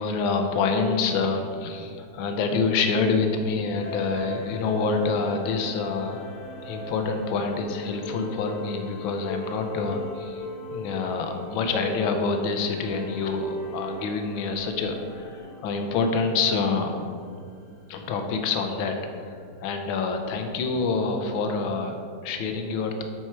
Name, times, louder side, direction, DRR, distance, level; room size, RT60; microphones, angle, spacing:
voice 1, 0.0-6.2 6.6-10.5 10.7-17.0 17.9-19.4 19.6-23.0, left 4 dB, 75° left, 5 dB, 1.5 m, -27 dB
sound 1, 3.8-17.9, equal, 55° left, 1.8 m, -40 dB
9.3 x 4.6 x 4.4 m, 2.3 s
omnidirectional pair, 2.3 m